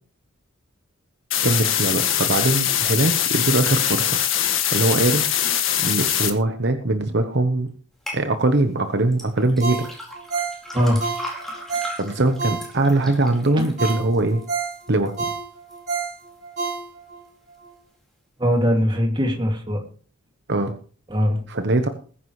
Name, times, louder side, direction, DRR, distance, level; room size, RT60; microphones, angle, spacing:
sound 1, 1.3-6.3, left 10 dB, 65° left, 1.7 m, -22 dB
voice 1, 1.4-4.2 4.7-5.3 5.5-7.7 8.1-9.9 12.0-14.4 14.9-15.3 20.5-20.7 21.5-21.9, right 2 dB, 55° right, 7 dB, 1.0 m, -21 dB
sound 2, 8.1-8.2 9.1-15.2 15.7-16.2 16.7-16.8, equal, ahead, 4.5 m, -37 dB
Ringtone, 9.6-13.1 13.4-13.5 13.8-17.2 17.6-17.7, right 5 dB, 40° right, 6.6 m, -29 dB
voice 2, 18.4-19.8 21.1-21.4, equal, 20° right, 2 dB, 2.4 m, -21 dB
20.5 x 9.6 x 3.2 m, 0.41 s
head